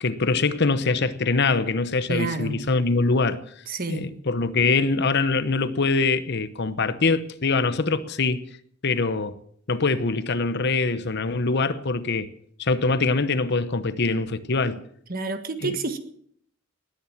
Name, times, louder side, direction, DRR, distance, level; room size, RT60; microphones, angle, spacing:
voice 1, 0.0-3.4 3.9-8.5 8.8-9.4 9.7-12.3 12.6-14.8 15.6-15.8, left 3 dB, 50° left, 0.9 m, -23 dB
voice 2, 2.1-2.6 3.7-4.1 15.1-16.0, right 3 dB, 40° right, 1.5 m, -29 dB
19.0 x 10.0 x 7.2 m
head